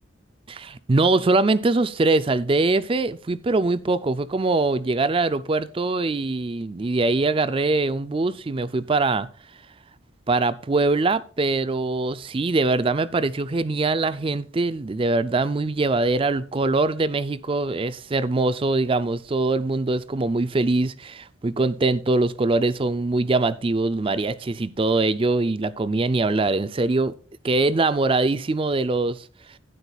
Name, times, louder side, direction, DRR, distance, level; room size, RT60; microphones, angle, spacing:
voice 1, 0.5-9.3 10.3-27.1 27.4-29.3, right 3 dB, 25° right, 0.4 m, -23 dB
12.0 x 9.8 x 2.3 m
head